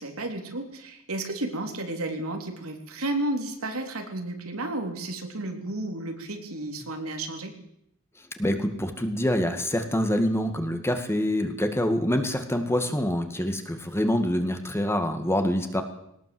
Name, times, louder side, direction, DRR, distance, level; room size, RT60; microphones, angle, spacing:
voice 1, 0.0-7.5, right 2 dB, 85° right, 4 dB, 3.5 m, -32 dB
voice 2, 8.4-15.8, left 1 dB, 10° left, 7 dB, 2.0 m, -26 dB
20.5 x 19.0 x 7.9 m, 0.77 s
head